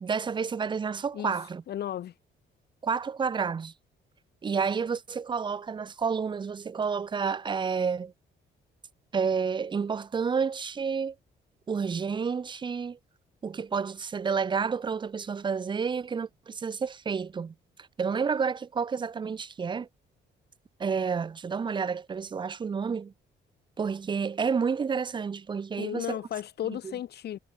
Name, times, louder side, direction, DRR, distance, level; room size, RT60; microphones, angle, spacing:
voice 1, 0.0-1.6 2.8-3.7 4.4-8.1 9.1-11.2 11.7-13.0 13.4-17.5 18.0-19.9 20.8-23.1 23.8-26.2 26.6-26.9, right 6 dB, 25° right, 0.4 m, -30 dB
voice 2, 1.7-2.1 25.8-27.4, left 11 dB, 55° left, 0.6 m, -34 dB
cardioid pair, 90°, 20 cm